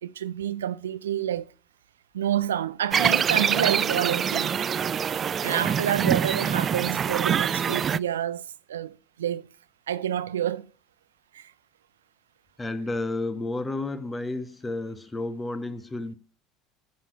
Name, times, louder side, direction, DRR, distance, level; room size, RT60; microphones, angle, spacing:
voice 1, 0.0-1.5 2.1-4.5 5.4-9.5 9.9-10.7 11.3-11.5, right 10 dB, 80° right, 0.6 m, -28 dB
sound 1, 2.9-8.0, right 7 dB, 35° right, 0.4 m, -25 dB
voice 2, 12.6-16.1, left 2 dB, 20° left, 1.6 m, -31 dB
10.5 x 6.4 x 4.6 m
hypercardioid pair, 70°, 0 cm